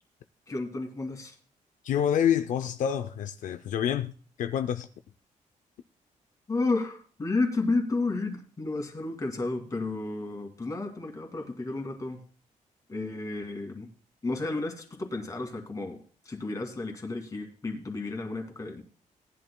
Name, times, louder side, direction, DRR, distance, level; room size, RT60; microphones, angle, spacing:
voice 1, 0.5-1.4 6.5-12.2 12.9-13.9 14.2-16.0 16.3-18.8, left 3 dB, 25° left, 2.1 m, -32 dB
voice 2, 1.8-4.1 4.4-4.9, left 9 dB, 75° left, 0.5 m, -27 dB
18.0 x 11.0 x 2.2 m
wide cardioid pair, 140°, 13 cm